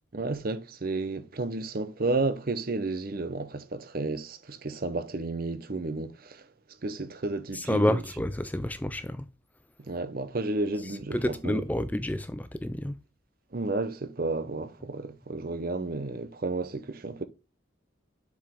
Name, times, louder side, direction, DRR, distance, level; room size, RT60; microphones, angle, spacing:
voice 1, 0.1-6.4 6.8-8.0 9.9-11.6 13.5-17.2, right 3 dB, 45° right, 0.7 m, -32 dB
voice 2, 7.5-9.3 10.8-13.0, left 1 dB, 10° left, 0.3 m, -29 dB
7.1 x 4.9 x 3.5 m
head